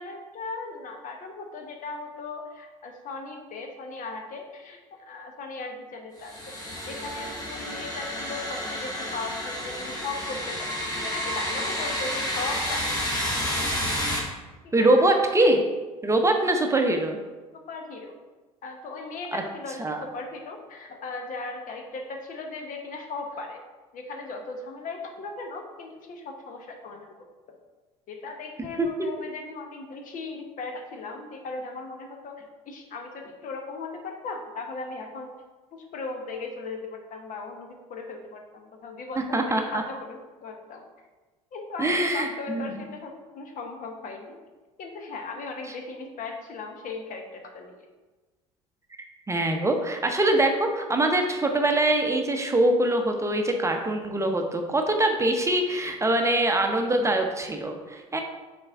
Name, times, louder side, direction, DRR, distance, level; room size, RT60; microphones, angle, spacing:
voice 1, 0.0-13.9 14.6-15.2 17.7-18.1 18.6-23.6 23.9-27.2 28.1-35.3 35.7-39.5 39.7-40.8 41.5-44.4 44.8-47.8, left 3 dB, 50° left, 3 dB, 1.0 m, -38 dB
sound 1, 6.2-14.2, equal, 20° left, 1.7 m, -30 dB
voice 2, 14.7-15.6 16.0-17.2 19.3-19.4 19.8-20.0 28.8-28.9 39.3-39.8 41.8-42.8 49.3-58.2, right 1 dB, 15° right, 4 dB, 0.8 m, -23 dB
6.4 x 4.3 x 3.6 m, 1.2 s
hypercardioid pair, 65°, 17 cm